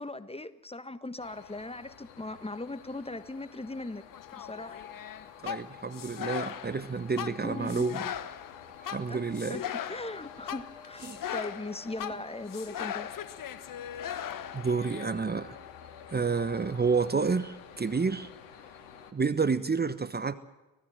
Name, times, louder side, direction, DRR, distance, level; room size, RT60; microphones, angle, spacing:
voice 1, 0.0-4.0 4.4-4.8 7.4-7.9 9.1-9.2 9.5-9.6 9.9-13.1, left 2 dB, 15° left, 1.4 m, -39 dB
sound 1, 1.2-19.1, left 9 dB, 75° left, 2.1 m, -49 dB
sound 2, 4.1-15.1, left 9 dB, 45° left, 1.4 m, -39 dB
voice 2, 5.4-8.1 8.8-9.6 11.0-11.2 14.5-15.6 16.1-18.3 19.1-20.3, right 5 dB, 20° right, 1.2 m, -29 dB
25.5 x 17.5 x 7.7 m
figure-of-eight pair, 45°, 44 cm